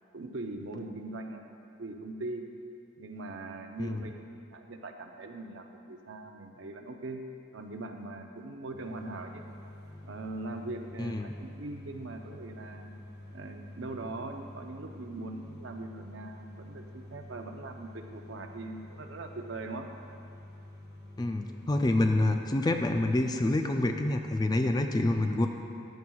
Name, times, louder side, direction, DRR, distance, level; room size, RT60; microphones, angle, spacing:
voice 1, 0.1-1.4 1.8-2.5 3.0-7.2 7.5-9.4 10.0-12.9 13.3-19.9, right 2 dB, 65° right, 4 dB, 0.7 m, -41 dB
sound 1, 8.7-22.2, left 1 dB, 50° left, 1.9 m, -48 dB
voice 2, 21.2-25.5, left 1 dB, 20° left, 5 dB, 0.3 m, -27 dB
14.0 x 9.1 x 2.3 m, 2.5 s
head